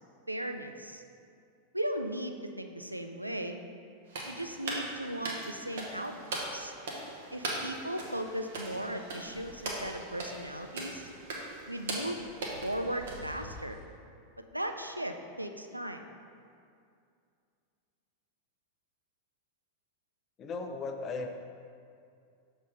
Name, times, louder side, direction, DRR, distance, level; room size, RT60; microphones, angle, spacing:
voice 1, 0.3-1.0 1.7-3.6 4.2-6.7 7.3-11.1 11.7-12.3 12.6-13.8 14.5-16.0, right 1 dB, 85° right, 6 dB, 0.4 m, -37 dB
sound 1, 4.1-13.8, right 2 dB, 60° right, 1.1 m, -40 dB
voice 2, 20.4-21.3, left 4 dB, 30° left, 5 dB, 0.6 m, -36 dB
6.6 x 4.0 x 5.0 m, 2.3 s
figure-of-eight pair, 90°, 0 cm